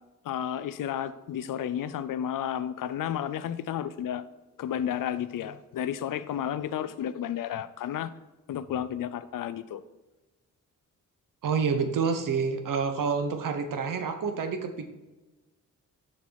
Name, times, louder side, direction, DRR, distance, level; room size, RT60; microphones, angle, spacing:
voice 1, 0.2-4.2 4.6-8.1 8.5-9.8, left 10 dB, 85° left, 14 dB, 0.6 m, -32 dB
voice 2, 11.4-14.9, right 5 dB, 80° right, 7 dB, 1.0 m, -28 dB
7.2 x 5.9 x 4.7 m, 1.1 s
wide cardioid pair, 165°, 32 cm